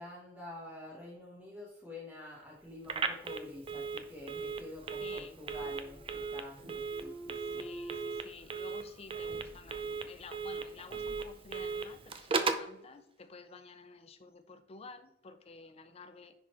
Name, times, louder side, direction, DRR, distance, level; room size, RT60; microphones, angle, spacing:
voice 1, 0.0-7.7, left 2 dB, 10° right, -6 dB, 1.3 m, -48 dB
Telephone, 2.8-12.7, right 4 dB, 30° right, 0.5 m, -37 dB
voice 2, 5.0-5.4 7.3-16.3, left 4 dB, 35° left, 10 dB, 0.5 m, -52 dB
sound 1, 5.4-6.3 6.6-8.2, right 1 dB, 80° right, 2.5 m, -48 dB
10.0 x 4.1 x 3.1 m, 0.82 s
head